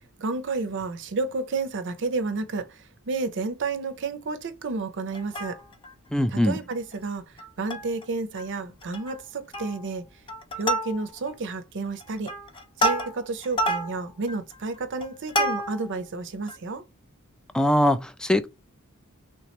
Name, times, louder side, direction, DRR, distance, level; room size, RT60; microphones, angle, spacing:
voice 1, 0.2-2.7 3.1-5.6 6.3-7.2 7.6-10.0 10.6-12.3 12.8-16.8, right 3 dB, 60° right, 0.6 m, -31 dB
Plucked string instrument, 5.1-5.9 6.4-6.5 6.7-6.9 7.4-8.0 8.4-8.5 8.8-9.2 9.5-9.9 10.3-11.3 11.9-16.0 16.5-16.6, equal, 25° left, 0.7 m, -29 dB
voice 2, 6.1-6.6 17.5-18.5, left 1 dB, 5° left, 0.3 m, -22 dB
3.3 x 3.1 x 2.9 m
head